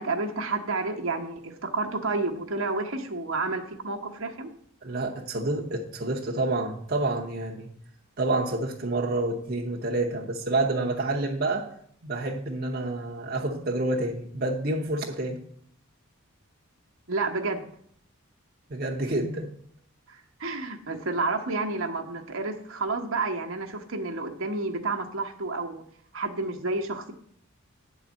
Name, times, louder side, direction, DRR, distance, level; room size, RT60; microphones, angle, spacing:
voice 1, 0.0-4.5 17.1-17.6 20.1-25.8 26.1-27.1, right 3 dB, 70° right, 2 dB, 1.0 m, -30 dB
voice 2, 4.8-7.7 8.2-11.7 12.0-15.4 18.7-19.5, right 2 dB, 45° right, -1 dB, 0.9 m, -28 dB
9.2 x 4.0 x 7.2 m, 0.65 s
head